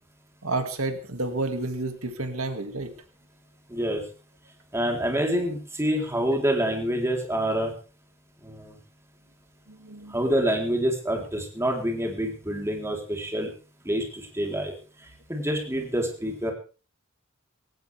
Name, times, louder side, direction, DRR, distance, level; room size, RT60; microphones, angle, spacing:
voice 1, 0.4-2.9 9.7-10.2, right 2 dB, 80° right, 7 dB, 2.4 m, -30 dB
voice 2, 3.7-4.0 4.7-7.7 8.4-8.7 10.1-13.5 13.8-14.7 15.3-16.5, right 1 dB, 15° right, 1 dB, 4.0 m, -27 dB
18.5 x 17.5 x 3.6 m, 0.36 s
head